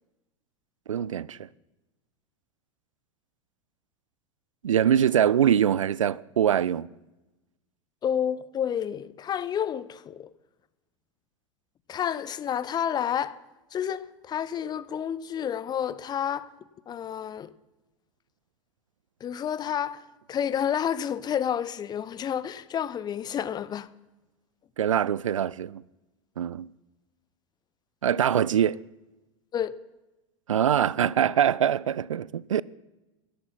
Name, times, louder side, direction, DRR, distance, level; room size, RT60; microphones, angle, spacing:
voice 1, 0.9-1.5 4.6-6.9 24.8-25.8 26.4-26.7 28.0-28.8 30.5-32.6, right 9 dB, 75° right, 0.4 m, -23 dB
voice 2, 8.0-10.3 11.9-13.4 13.7-16.5 16.9-17.5 19.2-23.9 29.5-29.8, left 9 dB, 25° left, 0.7 m, -30 dB
17.0 x 12.0 x 5.7 m
figure-of-eight pair, 85°, 17 cm